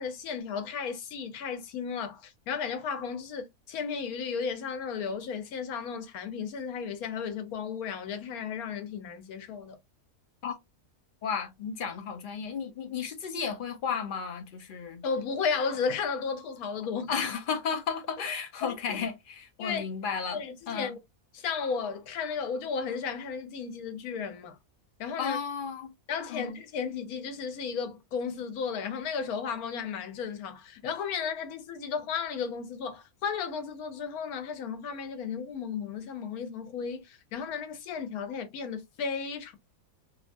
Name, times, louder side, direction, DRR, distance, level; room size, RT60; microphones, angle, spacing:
voice 1, 0.0-9.8 15.0-17.1 18.6-19.0 19.6-19.8 20.3-21.0 21.3-24.6 25.0-25.4 26.1-39.6, left 6 dB, 85° left, 1.2 m, -34 dB
voice 2, 11.2-15.0 17.1-20.4 20.7-21.0 25.2-25.9 26.3-26.6, left 6 dB, 55° left, 0.6 m, -33 dB
2.9 x 2.3 x 2.5 m
omnidirectional pair, 1.5 m